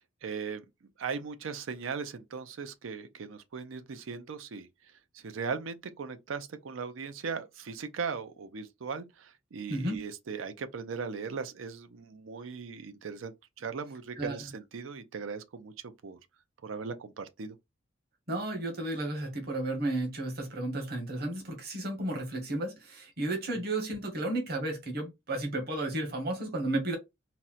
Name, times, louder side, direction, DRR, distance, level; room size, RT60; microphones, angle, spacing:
voice 1, 0.2-0.6 1.0-4.7 5.1-13.3 13.6-16.2 16.6-17.6 23.5-23.6, right 5 dB, 85° right, 0.5 m, -38 dB
voice 2, 9.7-10.0 14.2-14.4 18.3-27.0, right 1 dB, 55° right, 1.1 m, -33 dB
4.1 x 2.1 x 2.4 m
head